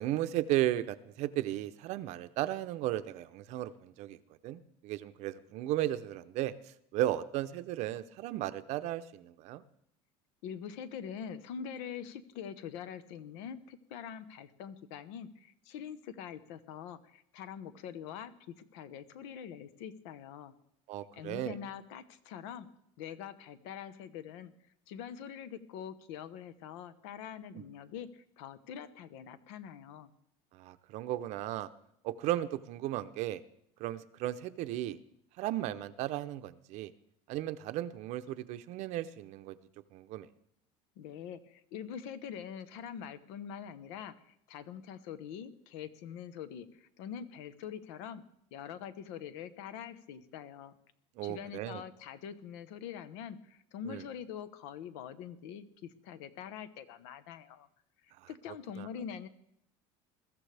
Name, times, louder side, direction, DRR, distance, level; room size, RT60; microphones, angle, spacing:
voice 1, 0.0-4.2 4.4-9.6 20.9-21.6 27.5-27.6 30.5-31.7 32.0-33.4 33.8-35.0 35.4-36.9 37.3-39.6 39.9-40.3 51.2-51.8 53.9-54.0 58.2-58.3 58.8-58.9, right 14 dB, 50° right, 12 dB, 0.7 m, -35 dB
voice 2, 10.4-20.5 21.1-22.7 23.0-24.5 24.9-30.1 41.0-48.2 48.5-50.7 51.2-57.7 58.0-59.3, left 8 dB, 85° left, 13 dB, 1.1 m, -44 dB
21.5 x 14.0 x 3.4 m, 0.72 s
cardioid pair, 165°, 15 cm